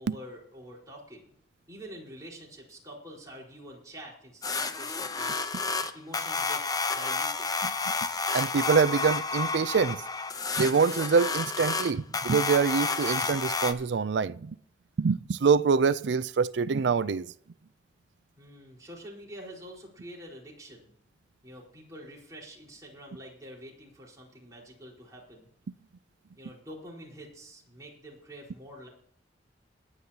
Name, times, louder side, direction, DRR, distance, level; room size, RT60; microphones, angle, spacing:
voice 1, 0.0-1.3 1.7-5.5 5.9-7.5 18.4-20.9 21.4-25.5 26.4-28.9, equal, 20° right, 4.5 m, -46 dB
sound 1, 4.4-13.7, left 4 dB, 20° left, 0.8 m, -30 dB
voice 2, 8.3-10.0 10.6-14.6 15.0-17.3, right 5 dB, 70° right, 0.4 m, -25 dB
21.0 x 9.6 x 2.9 m
head